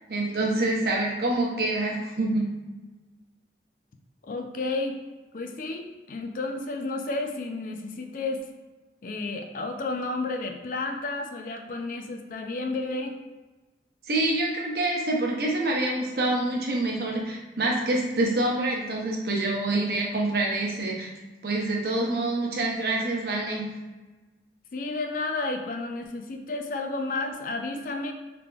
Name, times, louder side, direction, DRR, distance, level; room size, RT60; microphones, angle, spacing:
voice 1, 0.1-2.4 14.1-21.1 21.4-23.7, right 2 dB, 60° right, -1 dB, 0.8 m, -26 dB
voice 2, 4.2-5.0 5.3-8.4 9.0-13.1 24.7-28.1, left 3 dB, 50° left, 5 dB, 0.4 m, -31 dB
3.9 x 3.4 x 2.3 m, 1.2 s
head